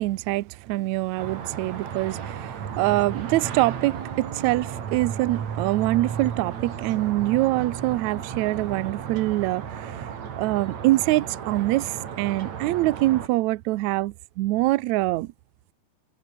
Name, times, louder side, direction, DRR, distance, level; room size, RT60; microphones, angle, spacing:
voice 1, 0.0-10.1 10.4-15.3, right 18 dB, 75° right, 1.7 m, -24 dB
sound 1, 1.2-13.3, right 8 dB, 55° right, 3.5 m, -34 dB
omnidirectional pair, 4.1 m